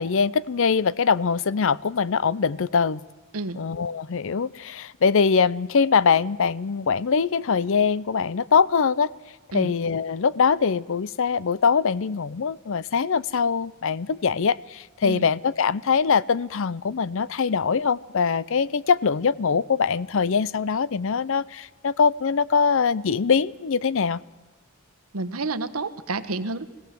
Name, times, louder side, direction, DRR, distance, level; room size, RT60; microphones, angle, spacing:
voice 1, 0.0-3.0 3.5-9.1 9.5-24.2, left 5 dB, 65° left, 20 dB, 0.5 m, -23 dB
voice 2, 25.1-26.7, right 3 dB, 85° right, 13 dB, 1.2 m, -29 dB
22.0 x 16.5 x 7.6 m, 1.2 s
head